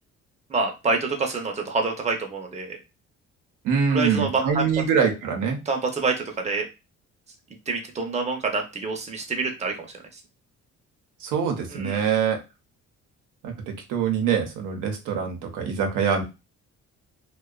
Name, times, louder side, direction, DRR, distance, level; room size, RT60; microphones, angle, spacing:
voice 1, 0.5-2.8 3.9-4.7 5.7-6.7 7.7-9.9 10.1-10.2 11.7-12.0, right 3 dB, 20° right, 2 dB, 0.6 m, -27 dB
voice 2, 3.6-5.6 11.2-12.4 13.4-16.2, right 7 dB, 90° right, 3 dB, 0.7 m, -24 dB
2.4 x 2.2 x 2.3 m, 0.27 s
cardioid pair, 90°, 30 cm